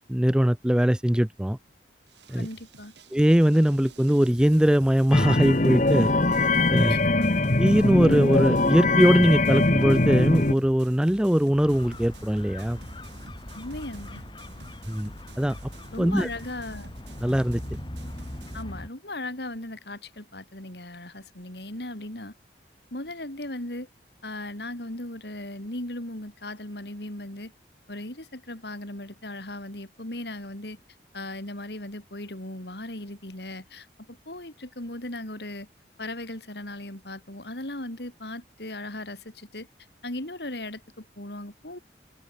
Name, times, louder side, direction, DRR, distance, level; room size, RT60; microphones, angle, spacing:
voice 1, 0.1-1.6 2.3-2.5 3.1-6.1 6.7-7.0 7.6-12.8 14.9-15.6 16.0-16.3 17.2-17.6, equal, 5° right, 0.4 m, -21 dB
sound 1, 2.1-18.6, right 2 dB, 85° right, 4.4 m, -49 dB
voice 2, 2.3-2.9 6.7-7.5 13.5-14.2 15.9-16.9 18.5-22.3 22.9-23.9 24.2-27.5 27.9-30.8 31.1-35.7 36.0-39.7 40.0-41.8, left 1 dB, 70° left, 4.3 m, -37 dB
sound 2, 5.1-10.5, left 2 dB, 45° left, 1.2 m, -22 dB
sound 3, 11.6-18.9, left 1 dB, 25° left, 2.1 m, -40 dB
head